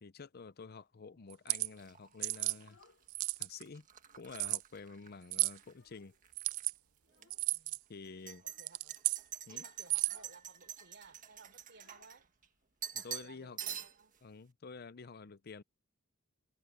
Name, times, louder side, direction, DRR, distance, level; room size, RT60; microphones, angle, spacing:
voice 1, 0.0-2.8 3.4-3.9 4.2-6.1 7.9-8.4 9.5-9.7 12.9-13.6 14.2-15.6, left 4 dB, 50° left, 0.6 m, -49 dB
sound 1, 1.3-1.7 2.2-2.6 3.1-3.6 4.3-4.6 5.3-5.6 6.3-6.7 7.3-7.8 8.5-9.2 9.8-10.3, right 23 dB, 85° right, 0.3 m, -33 dB
sound 2, 1.8-5.7 6.0-6.7 7.2-7.3 8.0-12.5 12.8-13.3 13.6-14.2, right 9 dB, 40° right, 1.5 m, -47 dB
Child speech kid speaking, 2.4-3.4 3.8-4.6 4.9-5.0 5.3-6.4 7.0-7.5 8.4-8.9 9.3-9.5 9.9-10.4 10.7-10.8 11.0-13.8, left 5 dB, 70° left, 3.4 m, -69 dB
voice 2, 7.5-7.8 8.4-9.0 9.5-12.3 13.0-14.2, right 4 dB, 60° right, 3.7 m, -59 dB
head